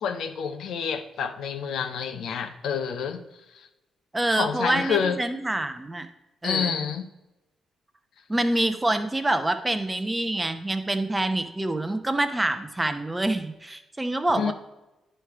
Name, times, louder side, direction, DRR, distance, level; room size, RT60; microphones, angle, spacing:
voice 1, 0.0-3.2 3.5-3.7 4.3-5.2 6.4-7.1 14.4-14.5, left 7 dB, 75° left, 0.5 m, -28 dB
voice 2, 4.1-6.1 6.4-6.8 8.3-14.5, right 1 dB, 15° right, 0.8 m, -26 dB
9.7 x 3.3 x 4.6 m
supercardioid pair, 65°, 0 cm